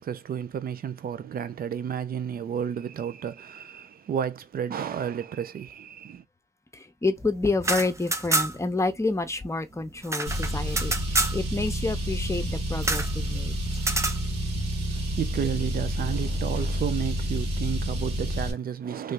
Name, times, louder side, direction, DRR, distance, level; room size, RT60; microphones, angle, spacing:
voice 1, 0.0-6.2 14.9-19.1, right 8 dB, 60° right, 0.6 m, -32 dB
voice 2, 6.7-13.6, left 3 dB, 15° left, 0.8 m, -29 dB
sound 1, 7.5-8.8 9.0-9.1 9.4-11.4 12.8-13.1 13.8-14.2, right 2 dB, 15° right, 0.6 m, -27 dB
Car, 10.3-18.5, equal, 90° right, 1.8 m, -29 dB
3.3 x 2.7 x 3.6 m
cardioid pair, 75°, 17 cm